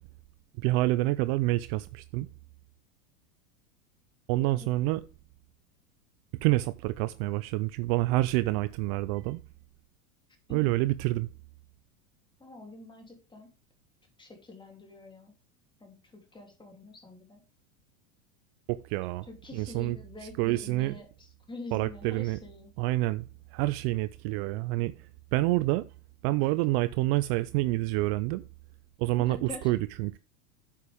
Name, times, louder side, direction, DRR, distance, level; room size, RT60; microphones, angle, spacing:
voice 1, 0.6-2.3 4.3-5.0 6.4-9.4 10.5-11.3 18.7-19.3 19.5-20.0 20.4-20.9 21.7-22.4 22.8-23.3 23.5-24.9 25.3-25.8 26.2-28.4 29.0-30.2, right 18 dB, 45° right, 0.5 m, -27 dB
voice 2, 12.4-13.5 14.2-15.3 15.8-17.4 19.3-22.7 29.2-29.7, left 2 dB, 10° left, 3.1 m, -46 dB
10.0 x 8.5 x 3.5 m
supercardioid pair, 130°, 42 cm